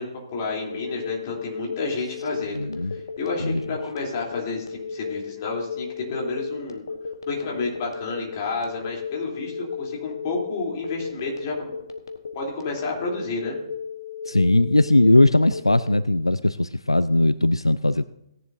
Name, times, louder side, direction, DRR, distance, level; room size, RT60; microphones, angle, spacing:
voice 1, 0.0-2.6 2.9-6.8 7.3-11.7 12.3-13.6, left 3 dB, 35° left, -1 dB, 3.3 m, -30 dB
Telephone, 0.7-16.0, left 5 dB, 65° left, 1.2 m, -34 dB
voice 2, 2.5-2.9 3.4-3.6 14.3-18.0, left 2 dB, 85° left, 16 dB, 0.3 m, -19 dB
17.5 x 10.0 x 2.7 m, 0.82 s
figure-of-eight pair, 130°, 3 cm